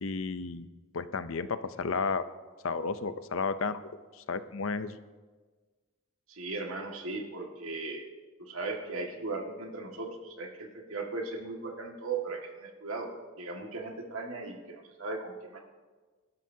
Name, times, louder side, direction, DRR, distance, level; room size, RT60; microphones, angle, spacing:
voice 1, 0.0-0.7 0.9-2.2 2.6-3.8 4.1-5.0, left 4 dB, 70° left, 12 dB, 0.6 m, -32 dB
voice 2, 6.3-8.1 8.4-13.1 13.4-15.6, right 3 dB, 80° right, 2 dB, 1.9 m, -37 dB
22.5 x 12.0 x 2.8 m, 1.4 s
head